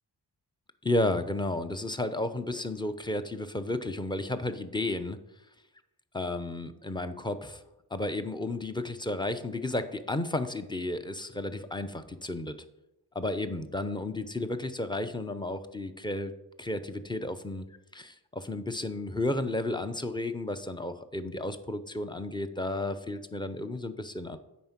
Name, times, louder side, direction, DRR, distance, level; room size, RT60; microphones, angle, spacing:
voice 1, 0.8-5.2 6.1-7.6 7.9-12.6 13.1-16.3 16.6-17.7 17.9-24.4, left 2 dB, 10° left, 10 dB, 0.7 m, -32 dB
9.4 x 5.2 x 7.3 m, 0.94 s
wide cardioid pair, 110°, 41 cm